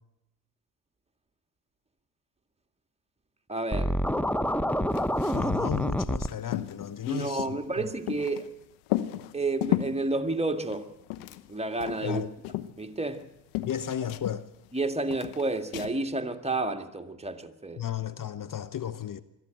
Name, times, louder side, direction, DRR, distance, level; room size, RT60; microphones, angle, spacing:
voice 1, 3.5-4.0 7.1-8.5 9.3-10.9 11.5-12.2 12.8-13.2 14.7-17.8, right 2 dB, 15° right, 2.0 m, -30 dB
Scratching (performance technique), 3.7-6.3, equal, 5° left, 1.0 m, -27 dB
sound 1, 4.9-5.6 5.9-6.0 6.2-8.5 8.9-10.0 10.6-11.6 11.8-13.3 13.5-14.8 15.1-15.9, left 15 dB, 80° left, 1.1 m, -33 dB
voice 2, 5.3-7.8 12.0-12.3 13.6-14.5 17.8-19.2, left 9 dB, 45° left, 1.0 m, -34 dB
22.0 x 13.5 x 9.1 m
hypercardioid pair, 60°, 47 cm